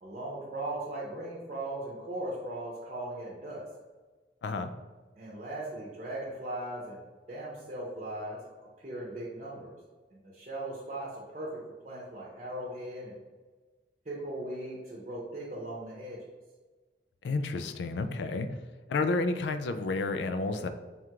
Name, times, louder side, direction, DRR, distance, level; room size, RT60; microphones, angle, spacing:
voice 1, 0.0-3.6 5.2-8.4 8.8-9.7 10.1-11.5 11.8-13.2 14.0-16.2, right 1 dB, 35° right, -4 dB, 0.7 m, -38 dB
voice 2, 17.2-18.5 18.9-20.7, left 3 dB, 80° left, 9 dB, 0.3 m, -30 dB
3.5 x 2.4 x 4.5 m, 1.3 s
head